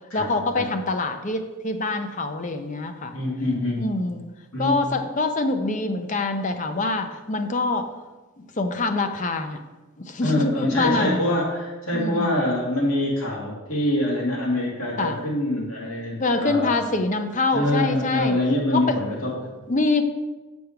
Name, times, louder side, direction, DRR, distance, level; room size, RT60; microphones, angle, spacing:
voice 1, 0.1-3.2 3.8-4.2 4.6-7.9 8.4-9.6 10.0-11.2 11.9-12.3 15.0-15.2 16.2-18.4 18.7-19.0 19.7-20.0, left 3 dB, 35° left, 7 dB, 0.6 m, -25 dB
voice 2, 3.1-3.9 4.5-4.8 10.2-16.8 17.5-19.5, left 1 dB, 85° left, -4 dB, 2.5 m, -25 dB
7.6 x 5.3 x 4.6 m, 1.2 s
head